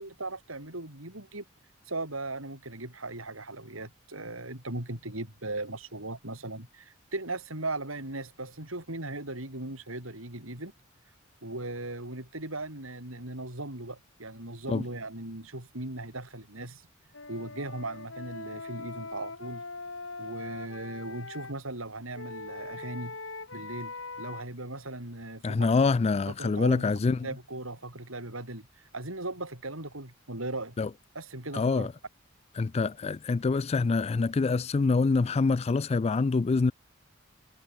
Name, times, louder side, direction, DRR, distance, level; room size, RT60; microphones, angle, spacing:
voice 1, 0.0-1.4 1.9-10.7 11.4-16.8 17.3-19.6 20.2-23.2 23.5-25.7 26.3-30.8 31.1-31.9, right 2 dB, 85° right, 6.6 m, -38 dB
Wind instrument woodwind instrument, 17.1-21.6 22.1-24.4, left 3 dB, 70° left, 6.6 m, -41 dB
voice 2, 25.4-27.3 30.8-30.9 31.5-31.9 32.5-36.7, left 4 dB, 30° left, 0.4 m, -25 dB
head